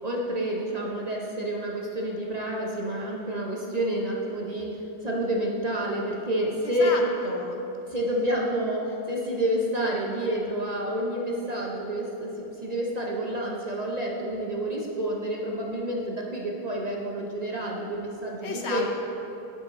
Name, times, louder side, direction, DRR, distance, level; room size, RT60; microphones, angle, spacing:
voice 1, 0.0-6.9 7.9-18.9, right 1 dB, 40° right, -2 dB, 0.5 m, -29 dB
voice 2, 6.6-7.6 18.4-18.9, left 4 dB, 55° left, 2 dB, 0.8 m, -33 dB
9.2 x 7.3 x 4.1 m, 3.0 s
omnidirectional pair, 1.8 m